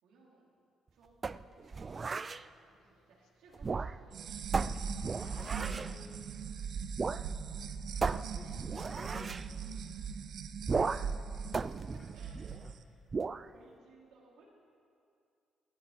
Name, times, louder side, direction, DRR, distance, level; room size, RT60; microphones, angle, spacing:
voice 1, 0.0-0.5 0.9-4.7 11.4-12.7 13.4-14.4, right 3 dB, 85° right, -4 dB, 4.2 m, -62 dB
sound 1, 1.2-2.4 3.5-4.2 4.5-5.9 7.0-7.3 7.5-7.6 8.0-9.5 10.6-11.2 11.5-12.7 13.1-13.5, right 4 dB, 35° right, 0.4 m, -35 dB
Zipper (clothing), 2.7-7.3 7.9-8.0, left 7 dB, 85° left, 1.1 m, -60 dB
sound 2, 4.1-12.7, right 6 dB, 65° right, 0.8 m, -40 dB
voice 2, 5.6-6.4 7.9-9.5 12.0-12.1 12.6-13.0, left 2 dB, 30° left, 1 dB, 1.4 m, -53 dB
19.0 x 13.0 x 4.6 m, 2.4 s
cardioid pair, 90°, 0 cm